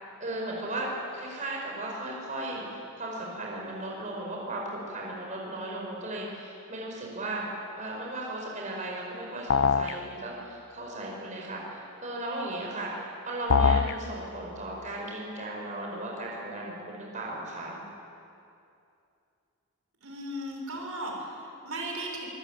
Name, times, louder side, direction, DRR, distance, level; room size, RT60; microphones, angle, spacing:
voice 1, 0.2-7.5 7.8-17.8, right 1 dB, 35° right, -2 dB, 5.1 m, -36 dB
sound 1, 9.5-10.0 13.5-14.0, left 5 dB, 55° left, 0.6 m, -22 dB
voice 2, 20.0-22.3, right 1 dB, 65° right, 0 dB, 6.0 m, -36 dB
24.5 x 22.0 x 9.0 m, 2.6 s
head